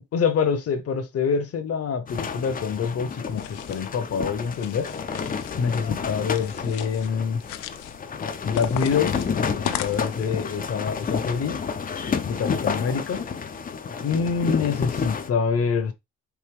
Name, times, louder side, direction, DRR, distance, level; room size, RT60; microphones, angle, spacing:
voice 1, 0.0-4.9 5.6-7.4 8.4-11.6 12.3-13.2 14.0-15.9, left 6 dB, 50° left, 0.9 m, -26 dB
sound 1, 2.1-15.3, left 6 dB, 30° left, 0.5 m, -30 dB
sound 2, 3.3-3.9 4.4-5.6 6.2-7.1 7.4-8.0 8.6-10.3, left 12 dB, 85° left, 0.5 m, -35 dB
4.7 x 2.7 x 3.4 m
cardioid pair, 90°, 30 cm